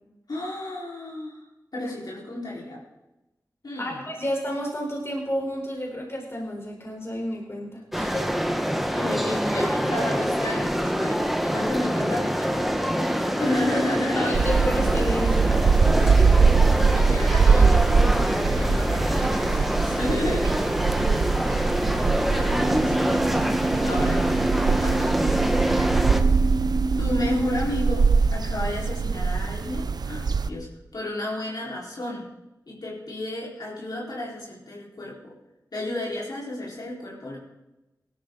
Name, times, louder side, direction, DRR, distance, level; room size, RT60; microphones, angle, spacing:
voice 1, 0.3-1.5 1.7-2.8 3.6-4.0 8.9-14.4 16.9-18.0 18.5-20.5 21.9-23.1 23.8-24.3 24.6-25.2 27.0-30.7 30.9-32.3 32.7-35.4 35.7-37.4, left 1 dB, 70° left, -4 dB, 4.6 m, -32 dB
voice 2, 3.8-8.3 14.1-16.3, equal, 35° left, 0 dB, 4.4 m, -31 dB
sound 1, 7.9-26.2, equal, ahead, 1.5 m, -25 dB
sound 2, 14.3-30.5, right 5 dB, 75° right, 0.7 m, -22 dB
sound 3, 22.6-27.6, right 2 dB, 50° right, 1.4 m, -28 dB
17.0 x 13.0 x 4.0 m, 0.98 s
cardioid pair, 50°, 7 cm